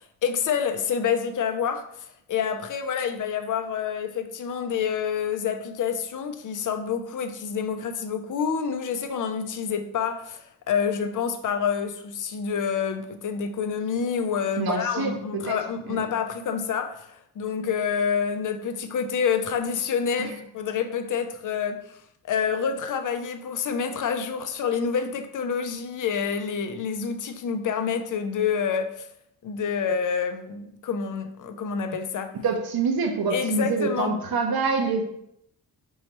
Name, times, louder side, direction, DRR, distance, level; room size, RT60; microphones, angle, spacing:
voice 1, 0.0-22.0 22.2-29.1 29.4-32.4 33.3-34.2, left 6 dB, 50° left, 7 dB, 0.5 m, -28 dB
voice 2, 14.6-16.0 20.2-20.4 32.4-35.0, right 4 dB, 60° right, 3 dB, 0.8 m, -26 dB
5.4 x 3.2 x 3.0 m, 0.75 s
wide cardioid pair, 140°, 40 cm